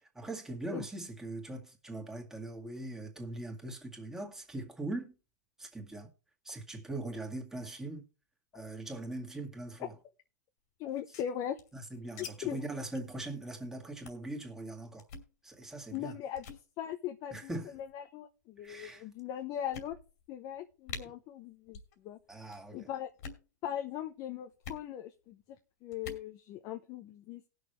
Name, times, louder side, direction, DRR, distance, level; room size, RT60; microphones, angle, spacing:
voice 1, 0.0-5.1 5.6-6.1 6.4-8.1 8.5-10.0 11.7-15.1 15.4-16.2 17.3-17.8 18.6-19.0 22.3-22.9, right 2 dB, 5° right, 2.0 m, -41 dB
voice 2, 10.8-11.6 12.4-12.6 15.9-20.0 20.3-21.8 22.0-22.2 22.7-23.1 23.6-25.4 25.8-27.4, left 10 dB, 45° left, 0.9 m, -39 dB
sound 1, 10.9-12.3 12.5-12.6 12.9-13.1 13.4-13.6 14.0-14.3 15.0-15.3 15.9-16.1 16.4-16.6 17.5-17.9 18.6-18.7 19.2-19.3 19.7-20.3 20.5-20.6 20.9-21.0 21.7-21.9 22.2-22.6 23.1-23.5 24.6-24.8 25.9-26.3, left 5 dB, 65° left, 2.6 m, -46 dB
18.5 x 6.4 x 3.2 m
hypercardioid pair, 120°, 9 cm